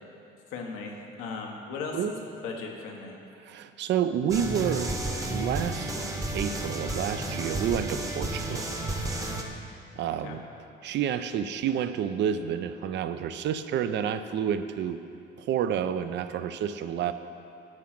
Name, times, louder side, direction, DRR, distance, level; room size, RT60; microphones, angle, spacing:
voice 1, 0.5-2.2 2.4-3.1 10.2-10.4, left 4 dB, 90° left, 1 dB, 1.1 m, -37 dB
voice 2, 3.4-4.9 5.3-5.9 6.3-8.7 10.0-10.4 10.8-15.0 15.4-17.1, right 8 dB, 60° right, 11 dB, 0.5 m, -29 dB
sound 1, 4.3-9.4, right 1 dB, 15° right, 0.8 m, -32 dB
10.5 x 3.8 x 5.9 m, 2.6 s
cardioid pair, 95°, 21 cm